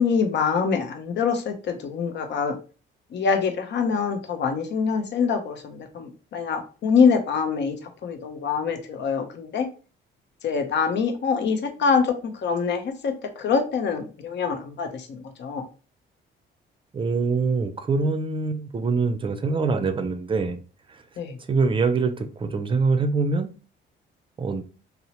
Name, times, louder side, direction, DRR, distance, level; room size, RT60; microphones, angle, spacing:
voice 1, 0.0-2.6 3.1-9.7 10.4-15.6 21.2-21.4, left 5 dB, 60° left, 0.6 m, -25 dB
voice 2, 16.9-20.6 21.5-23.5 24.4-24.6, right 4 dB, 25° right, 0.4 m, -24 dB
2.8 x 2.0 x 2.8 m
cardioid pair, 90°, 20 cm